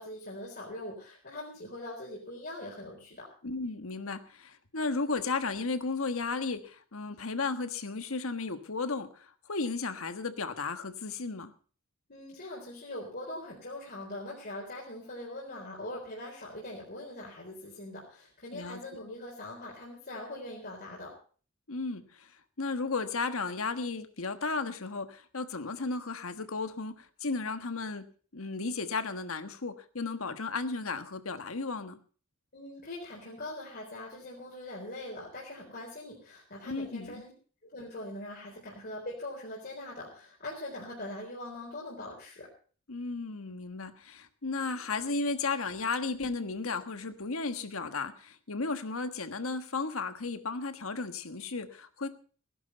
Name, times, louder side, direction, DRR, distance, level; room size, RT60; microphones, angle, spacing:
voice 1, 0.0-3.3 12.1-21.2 32.5-37.3 37.6-42.5, left 1 dB, 50° left, -4 dB, 4.1 m, -42 dB
voice 2, 3.4-11.5 18.5-18.8 21.7-22.3 22.6-28.0 28.3-32.0 36.7-37.2 42.9-52.1, left 4 dB, 80° left, 10 dB, 1.4 m, -34 dB
17.0 x 11.0 x 5.6 m, 0.42 s
head